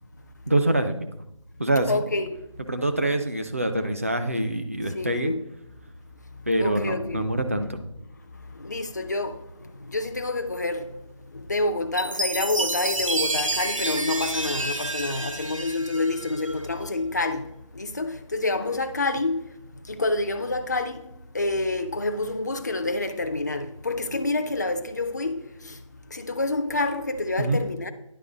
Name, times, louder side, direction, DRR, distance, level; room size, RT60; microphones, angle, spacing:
voice 1, 0.5-0.9 1.6-1.9 2.7-5.3 6.5-7.8 27.4-27.6, right 1 dB, 25° right, 0.4 m, -25 dB
voice 2, 1.9-2.4 4.9-5.4 6.6-7.3 8.5-10.9 11.3-17.5 17.7-19.4 19.9-21.0 21.3-25.8 26.1-27.9, left 2 dB, 35° left, 0.4 m, -28 dB
Chime, 12.0-16.6, right 2 dB, 85° right, 0.8 m, -29 dB
9.9 x 4.7 x 3.8 m
figure-of-eight pair, 165°, 16 cm